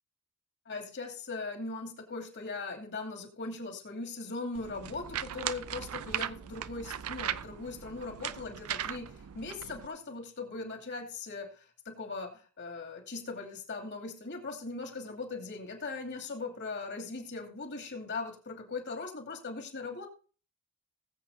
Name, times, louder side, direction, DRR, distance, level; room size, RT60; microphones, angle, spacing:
voice 1, 0.7-20.1, left 3 dB, 55° left, 2 dB, 2.8 m, -39 dB
sound 1, 4.5-9.9, right 10 dB, 75° right, 0.5 m, -38 dB
20.0 x 7.8 x 2.8 m, 0.38 s
head